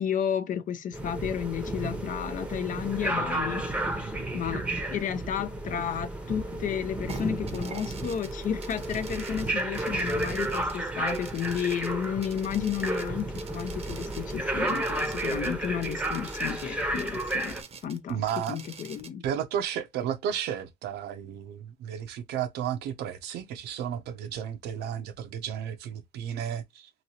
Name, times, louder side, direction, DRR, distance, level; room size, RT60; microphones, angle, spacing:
voice 1, 0.0-17.6 17.8-18.2 18.5-19.2, left 8 dB, 50° left, 0.6 m, -32 dB
BC Ferries Ferry Horn + Announcements, 0.9-17.6, right 1 dB, 10° right, 0.8 m, -32 dB
sound 1, 7.1-19.1, right 5 dB, 35° right, 0.7 m, -46 dB
voice 2, 18.1-18.6 19.2-26.9, right 9 dB, 80° right, 0.7 m, -33 dB
3.0 x 2.8 x 2.7 m
cardioid pair, 110°, 17 cm